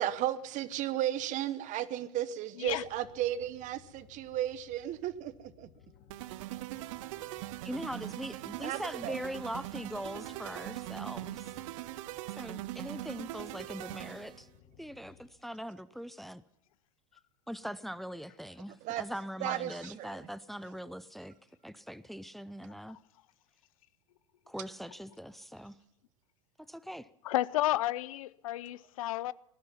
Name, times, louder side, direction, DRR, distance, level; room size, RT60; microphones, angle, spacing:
voice 1, 0.0-5.7 8.6-9.2 18.8-19.0 19.4-20.3, right 12 dB, 45° right, 1.0 m, -34 dB
sound 1, 2.7-15.3, left 8 dB, 50° left, 3.8 m, -59 dB
sound 2, 6.1-14.4, right 18 dB, 65° right, 0.6 m, -41 dB
voice 2, 7.6-11.5 12.4-14.5 14.8-16.4 17.5-21.3 21.6-23.0 24.5-25.8 26.7-27.1, equal, ahead, 0.5 m, -41 dB
voice 3, 27.2-29.3, left 15 dB, 75° left, 0.5 m, -31 dB
18.5 x 12.0 x 5.7 m
hypercardioid pair, 100°, 18 cm